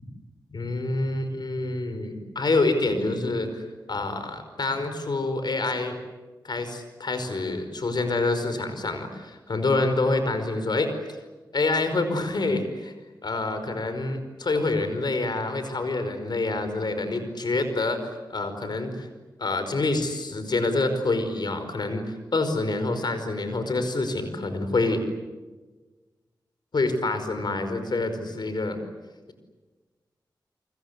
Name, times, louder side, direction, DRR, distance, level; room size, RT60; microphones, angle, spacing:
voice 1, 0.5-3.6 3.9-5.9 6.4-10.9 11.5-12.9 13.2-19.1 19.4-25.0 26.7-28.8, left 2 dB, 65° left, 9 dB, 5.1 m, -27 dB
29.5 x 24.5 x 8.2 m, 1.3 s
cardioid pair, 50°, 8 cm